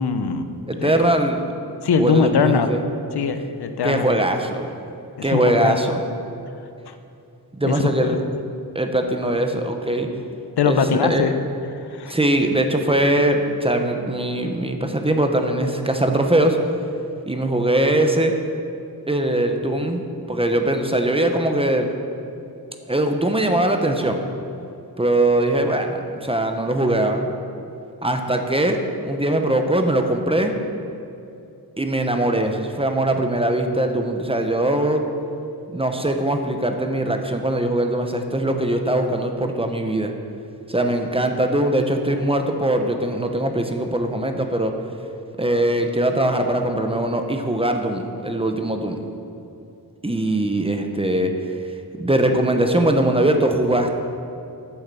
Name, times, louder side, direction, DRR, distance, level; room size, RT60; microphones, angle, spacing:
voice 1, 0.0-0.5 0.8-1.1 1.8-2.7 3.1-4.1 5.3-5.8 6.9-7.0 7.6-7.7 8.0-8.2 10.6-11.3 11.9-12.1, left 6 dB, 85° left, 8 dB, 0.8 m, -21 dB
voice 2, 0.7-1.4 2.0-2.8 3.8-4.7 5.2-6.0 7.5-8.2 8.7-10.1 10.6-11.2 12.1-16.6 17.3-18.3 19.1-21.9 22.9-24.2 25.0-27.3 28.0-30.5 31.8-35.0 35.7-40.1 40.7-44.7 45.4-49.0 50.0-51.3 52.0-53.9, right 1 dB, 15° right, 4 dB, 0.9 m, -21 dB
9.2 x 7.8 x 6.9 m, 2.7 s
wide cardioid pair, 100°, 38 cm